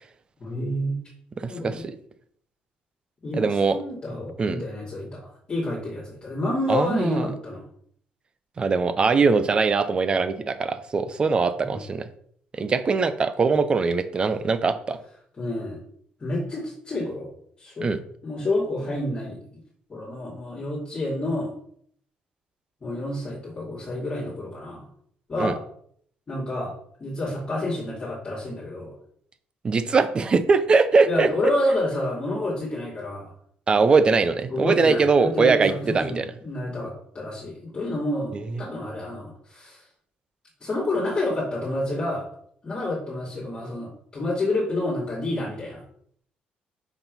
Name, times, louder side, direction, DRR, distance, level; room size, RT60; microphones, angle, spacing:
voice 1, 0.4-1.0 1.5-1.8 3.2-5.2 5.5-7.6 11.6-11.8 15.4-15.8 16.2-17.3 17.6-17.9 18.2-19.6 19.9-21.5 22.8-24.9 25.3-25.6 26.3-26.7 27.0-28.9 31.1-33.3 34.5-39.8 40.6-42.2 42.6-45.8, left 1 dB, 30° left, -5 dB, 2.4 m, -29 dB
voice 2, 1.4-2.0 3.3-3.8 4.4-4.6 6.7-7.3 8.6-12.1 12.5-15.0 17.8-18.0 25.4-25.5 29.6-31.3 33.7-36.3 38.3-38.6, right 4 dB, 30° right, 11 dB, 0.7 m, -21 dB
5.9 x 4.4 x 5.3 m, 0.63 s
cardioid pair, 125°, 3 cm